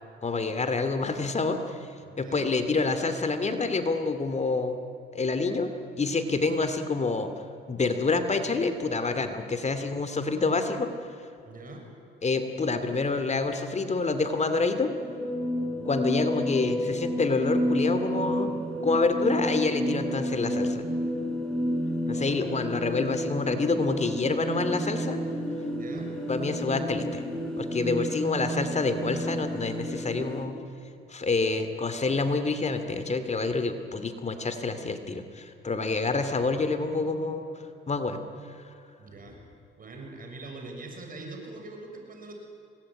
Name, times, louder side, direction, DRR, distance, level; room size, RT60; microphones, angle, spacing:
voice 1, 0.2-1.9 2.2-4.8 5.1-7.3 7.7-10.9 12.2-14.9 15.8-18.5 18.8-20.8 22.1-25.2 26.3-27.2 27.6-30.6 31.1-37.4 37.9-38.2 38.6-38.7, left 3 dB, 35° left, 9 dB, 2.5 m, -27 dB
voice 2, 2.0-2.5 11.4-11.8 15.6-15.7 22.0-22.5 25.7-26.1 39.0-39.3 39.8-42.3, right 2 dB, 45° right, 2 dB, 6.7 m, -43 dB
sound 1, 15.0-30.5, equal, 5° left, 4.2 m, -30 dB
26.0 x 21.0 x 10.0 m, 2.7 s
cardioid pair, 90°, 20 cm